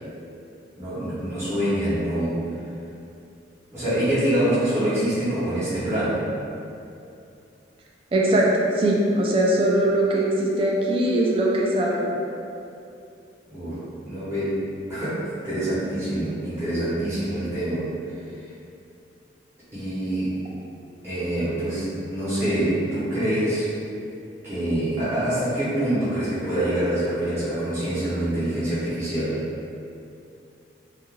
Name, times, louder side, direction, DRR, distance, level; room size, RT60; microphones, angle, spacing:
voice 1, 0.8-2.4 3.7-6.3 13.5-14.6 14.9-17.9 19.7-20.4 21.0-23.7 24.4-29.4, right 1 dB, 15° right, -15 dB, 0.8 m, -25 dB
voice 2, 8.1-8.5 8.8-12.0, right 1 dB, 30° right, -3 dB, 0.3 m, -21 dB
2.4 x 2.2 x 3.2 m, 2.6 s
head